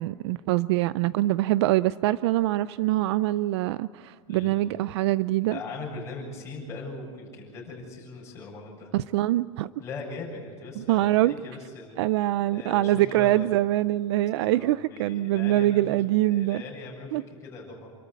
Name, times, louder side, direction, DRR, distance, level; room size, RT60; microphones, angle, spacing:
voice 1, 0.0-5.6 8.9-9.7 10.8-11.3 12.0-16.6 17.1-17.2, right 16 dB, 55° right, 17 dB, 0.4 m, -24 dB
voice 2, 4.3-4.6 5.4-8.9 9.8-12.0 12.5-13.5 14.3-15.8 16.3-17.9, left 3 dB, 15° left, -4 dB, 7.4 m, -40 dB
28.0 x 13.5 x 8.3 m, 2.1 s
supercardioid pair, 165°, 16 cm